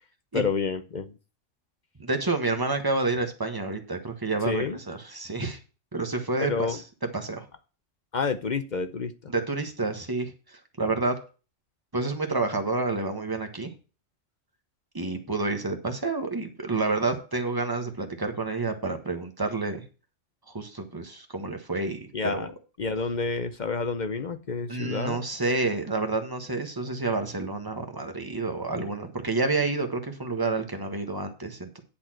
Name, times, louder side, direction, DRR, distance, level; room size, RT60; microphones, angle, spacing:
voice 1, 0.3-1.1 4.4-4.8 6.5-6.8 8.1-9.3 22.1-22.5 22.8-25.2, left 4 dB, 45° left, 9 dB, 0.7 m, -29 dB
voice 2, 2.0-5.6 5.9-6.8 7.1-7.5 9.3-11.2 11.9-13.7 14.9-19.8 20.5-22.5 24.7-31.8, right 3 dB, 15° right, 5 dB, 1.3 m, -29 dB
10.5 x 4.2 x 7.5 m, 0.34 s
omnidirectional pair, 1.3 m